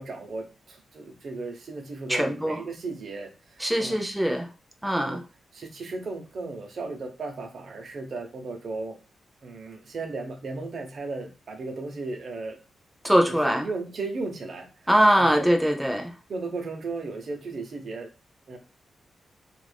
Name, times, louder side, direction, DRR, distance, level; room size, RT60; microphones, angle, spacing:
voice 1, 0.0-4.0 4.9-5.2 5.5-9.0 9.4-12.6 13.3-14.9 15.2-15.5 16.3-18.1 18.5-18.6, right 3 dB, 55° right, 3 dB, 0.8 m, -35 dB
voice 2, 2.1-2.6 3.6-4.5 4.8-5.2 13.0-13.7 14.9-16.1, equal, 5° right, 4 dB, 0.6 m, -22 dB
2.9 x 2.5 x 3.4 m, 0.32 s
wide cardioid pair, 125°, 0 cm